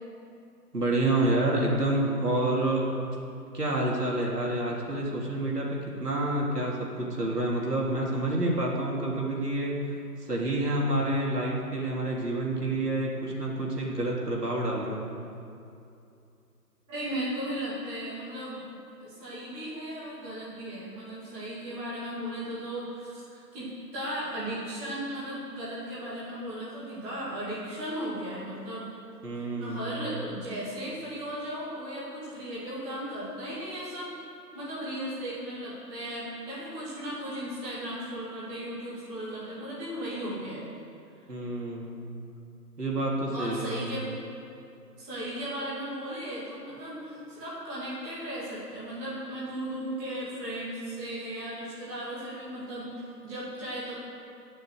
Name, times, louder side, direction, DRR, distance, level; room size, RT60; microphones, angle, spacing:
voice 1, 0.7-2.9 3.5-9.7 10.2-15.0 29.2-29.9 41.3-42.1 42.8-43.8, right 1 dB, 70° right, -3 dB, 3.5 m, -28 dB
voice 2, 16.9-18.7 19.0-28.9 29.4-34.1 34.5-40.6 43.3-44.1 45.0-53.9, right 1 dB, 10° right, -9 dB, 2.4 m, -36 dB
19.0 x 6.7 x 8.0 m, 2.6 s
figure-of-eight pair, 150°, 49 cm